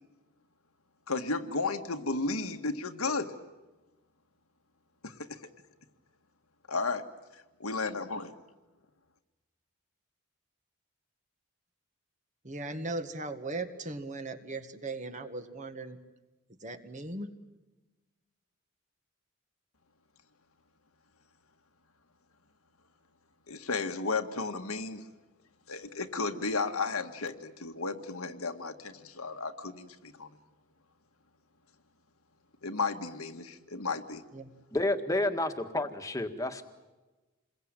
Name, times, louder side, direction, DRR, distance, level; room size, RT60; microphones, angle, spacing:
voice 1, 1.1-3.3 5.0-5.2 6.7-7.1 7.6-8.3 23.5-25.0 25.7-30.3 32.6-34.2, left 3 dB, 85° left, 6 dB, 1.8 m, -33 dB
voice 2, 12.4-16.0 16.6-17.3 34.3-34.5, right 2 dB, 35° right, 7 dB, 1.9 m, -38 dB
voice 3, 34.7-36.6, left 1 dB, 15° left, 6 dB, 1.7 m, -30 dB
28.0 x 22.0 x 9.1 m, 1.1 s
head